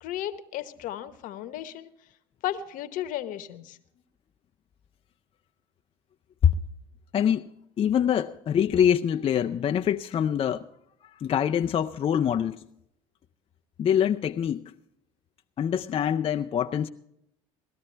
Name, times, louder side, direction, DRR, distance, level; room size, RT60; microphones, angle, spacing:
voice 1, 0.0-1.9 2.4-3.8, left 12 dB, 65° left, 1.1 m, -34 dB
voice 2, 7.1-7.5 7.8-10.7 11.2-12.6 13.8-14.7 15.6-16.9, left 9 dB, 40° left, 0.5 m, -24 dB
18.5 x 13.0 x 3.3 m
supercardioid pair, 75°, 15 cm